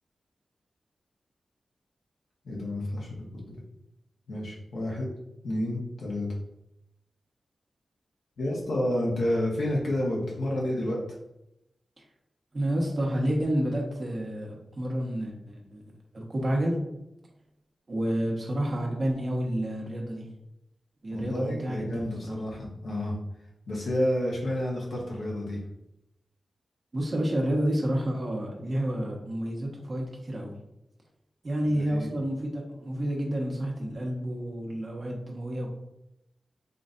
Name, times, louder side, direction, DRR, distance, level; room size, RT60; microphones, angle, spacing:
voice 1, 2.4-3.6 4.3-5.1 5.4-6.3 8.4-11.0 21.1-23.1 23.7-25.6 31.7-32.1, left 1 dB, 75° left, -3 dB, 1.4 m, -30 dB
voice 2, 12.5-16.8 17.9-20.3 21.0-22.4 26.9-30.6 31.4-35.7, right 1 dB, 50° right, -1 dB, 1.3 m, -30 dB
4.9 x 3.1 x 2.6 m, 0.85 s
cardioid pair, 55°, 0 cm